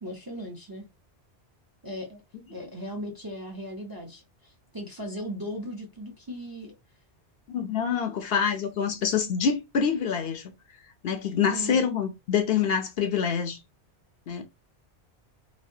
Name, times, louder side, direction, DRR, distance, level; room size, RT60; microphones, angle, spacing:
voice 1, 0.0-0.8 1.8-2.2 2.5-6.8 11.4-11.9, equal, 25° right, 0.5 m, -37 dB
voice 2, 7.5-10.5 11.0-13.6 14.3-14.4, left 7 dB, 65° left, 0.7 m, -26 dB
3.1 x 2.6 x 2.7 m
omnidirectional pair, 1.2 m